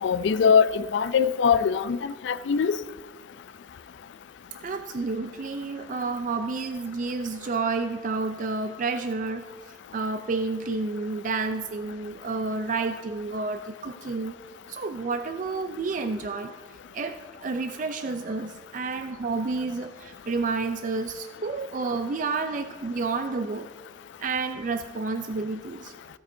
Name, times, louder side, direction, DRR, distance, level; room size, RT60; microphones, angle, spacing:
voice 1, 0.0-2.8, left 6 dB, 80° left, 16 dB, 0.4 m, -22 dB
voice 2, 4.6-9.5 9.9-14.4 14.7-16.5 16.9-23.7 24.2-25.9, right 3 dB, 45° right, 8 dB, 0.4 m, -30 dB
16.0 x 8.6 x 2.6 m, 1.5 s
head